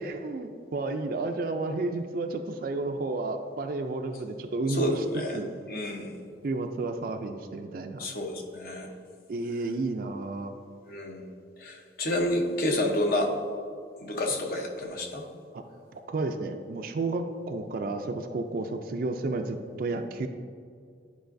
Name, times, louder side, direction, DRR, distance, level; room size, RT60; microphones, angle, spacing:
voice 1, 0.0-5.5 6.4-8.1 9.3-10.5 15.5-15.6 16.1-20.3, right 2 dB, 50° right, 5 dB, 0.3 m, -31 dB
voice 2, 4.7-5.4 5.7-6.1 8.0-8.9 10.9-11.2 11.6-13.3 14.0-15.2, left 1 dB, 55° left, 2 dB, 0.8 m, -29 dB
10.5 x 4.7 x 2.6 m, 2.2 s
head